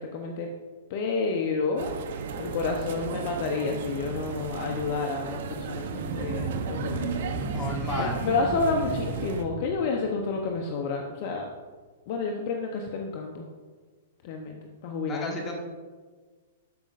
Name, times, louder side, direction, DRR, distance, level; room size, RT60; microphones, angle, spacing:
voice 1, 0.1-0.5 0.9-1.9 2.4-7.4 8.0-11.5 12.1-13.4 14.2-15.4, left 4 dB, 50° left, 2 dB, 0.8 m, -30 dB
sound 1, 1.8-9.4, right 6 dB, 65° right, 0.8 m, -36 dB
sound 2, 5.5-10.5, right 3 dB, 45° right, 1.5 m, -34 dB
voice 2, 7.5-8.2 15.1-15.5, left 2 dB, 25° left, 0 dB, 1.7 m, -33 dB
13.0 x 5.1 x 2.5 m, 1.4 s
hypercardioid pair, 130°, 0 cm